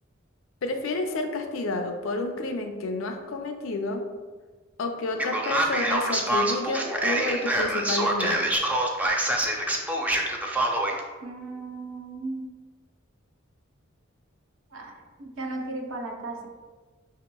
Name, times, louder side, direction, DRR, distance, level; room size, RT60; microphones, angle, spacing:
voice 1, 0.6-4.0 4.8-8.6, left 2 dB, 75° left, 4 dB, 0.5 m, -30 dB
Male speech man speaking, 5.2-11.0, right 1 dB, 10° right, 0.3 m, -25 dB
voice 2, 11.2-12.5 14.7-14.9 15.2-16.5, right 2 dB, 70° right, 2 dB, 0.6 m, -35 dB
5.0 x 2.8 x 2.2 m, 1.4 s
head